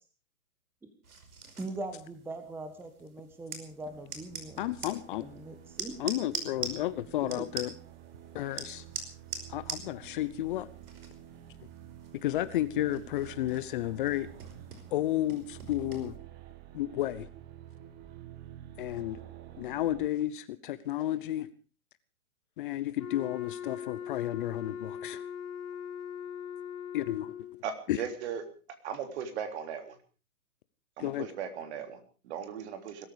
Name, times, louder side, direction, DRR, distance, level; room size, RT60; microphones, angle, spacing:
sound 1, 1.0-16.2, right 4 dB, 80° right, 5.4 m, -45 dB
voice 1, 1.6-4.6 5.2-6.4 7.3-7.4, right 2 dB, 5° right, 8 dB, 1.5 m, -41 dB
sound 2, 3.8-20.1, right 11 dB, 20° right, 1.4 m, -50 dB
voice 2, 4.6-5.3 6.0-7.7 8.3-8.8 9.5-10.7 12.2-14.3 14.9-16.1 16.7-17.3 18.8-19.2 19.6-21.5 22.6-25.2 26.9-27.2 27.9-28.0 31.0-31.3, left 14 dB, 35° left, 15 dB, 0.8 m, -32 dB
Wind instrument woodwind instrument, 23.0-27.6, left 8 dB, 80° left, 2.5 m, -40 dB
voice 3, 27.6-28.4 28.8-30.0 31.0-33.1, right 7 dB, 50° right, 8 dB, 3.5 m, -37 dB
21.0 x 14.0 x 5.0 m, 0.37 s
hypercardioid pair, 145°, 44 cm